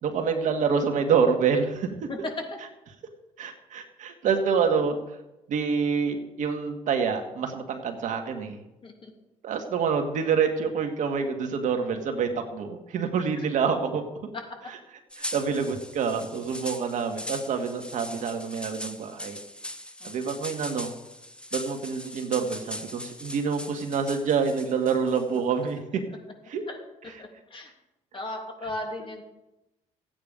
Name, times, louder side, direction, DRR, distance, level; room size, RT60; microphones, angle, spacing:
voice 1, 0.0-2.1 3.4-5.0 5.5-8.6 9.4-14.0 15.3-19.4 20.0-20.9 21.5-26.0 26.5-26.6, right 6 dB, 70° right, 4 dB, 1.9 m, -27 dB
sound 1, 15.1-25.4, left 1 dB, 5° left, 1.2 m, -40 dB
voice 2, 27.2-27.7 28.1-29.2, left 1 dB, 40° left, 1 dB, 3.2 m, -37 dB
14.0 x 9.2 x 5.3 m, 0.96 s
cardioid pair, 75°, 13 cm